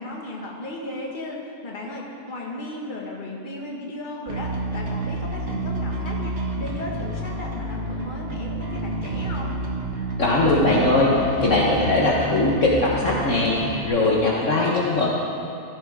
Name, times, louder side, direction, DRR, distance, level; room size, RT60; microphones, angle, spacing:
voice 1, 0.0-9.6, left 2 dB, 30° left, -2 dB, 1.8 m, -35 dB
Bass guitar, 4.3-13.9, right 2 dB, 45° right, 1.9 m, -29 dB
voice 2, 10.2-15.1, left 2 dB, 50° left, -5 dB, 1.6 m, -20 dB
16.0 x 14.0 x 3.7 m, 2.6 s
omnidirectional pair, 1.7 m